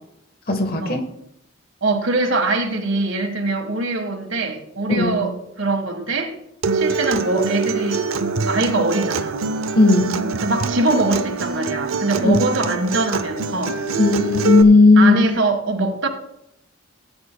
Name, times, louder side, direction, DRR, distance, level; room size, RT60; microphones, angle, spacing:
voice 1, 0.5-1.0 4.9-5.2 9.7-10.2 12.2-12.4 14.0-15.2, left 3 dB, 45° left, 1.3 m, -14 dB
voice 2, 1.8-6.3 6.7-8.0 8.5-9.4 10.4-13.8 15.0-16.1, right 2 dB, 70° right, 1.6 m, -22 dB
Acoustic guitar, 6.6-14.6, right 4 dB, 85° right, 0.7 m, -24 dB
17.5 x 9.6 x 2.3 m
head